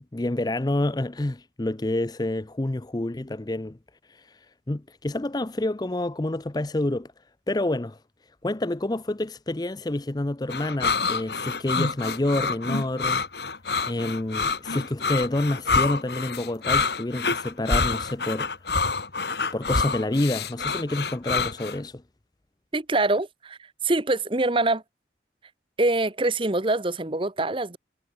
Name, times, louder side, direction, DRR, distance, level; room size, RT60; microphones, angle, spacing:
voice 1, 0.1-3.8 4.7-7.1 7.5-8.0 8.4-13.2 13.9-18.5 19.5-22.0, left 1 dB, 20° left, 0.6 m, -28 dB
sound 1, 10.5-21.8, left 4 dB, 65° left, 2.4 m, -27 dB
voice 2, 22.7-23.6 23.8-24.8 25.8-27.8, right 2 dB, 30° right, 1.0 m, -24 dB
head